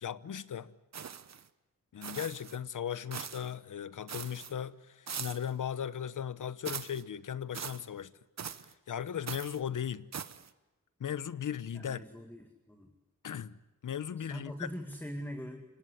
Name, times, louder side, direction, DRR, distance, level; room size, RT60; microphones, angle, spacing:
voice 1, 0.0-0.7 1.9-8.1 8.9-10.1 11.0-12.0 13.2-14.7, left 9 dB, 75° left, 1.0 m, -37 dB
sound 1, 0.9-1.5 2.0-2.6 3.1-3.5 4.1-4.5 5.1-5.5 6.6-7.0 7.5-7.8 8.4-8.7 9.3-9.6 10.1-10.5, right 7 dB, 55° right, 1.1 m, -41 dB
voice 2, 11.7-12.9 14.2-15.8, equal, 5° left, 2.2 m, -43 dB
28.5 x 18.5 x 10.0 m
wide cardioid pair, 90°, 31 cm